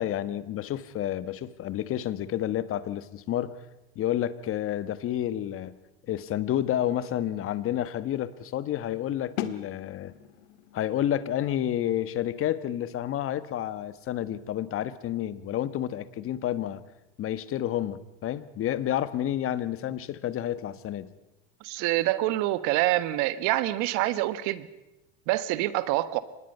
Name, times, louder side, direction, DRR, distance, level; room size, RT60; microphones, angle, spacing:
voice 1, 0.0-3.5 3.9-5.8 6.1-10.1 10.7-16.8 17.2-21.1, left 11 dB, 45° left, 15 dB, 1.4 m, -30 dB
sound 1, 9.4-15.1, left 11 dB, 75° left, 1.8 m, -43 dB
voice 2, 21.6-24.7 25.3-26.2, right 16 dB, 65° right, 15 dB, 1.5 m, -26 dB
24.5 x 20.0 x 5.6 m, 0.95 s
supercardioid pair, 100°, 32 cm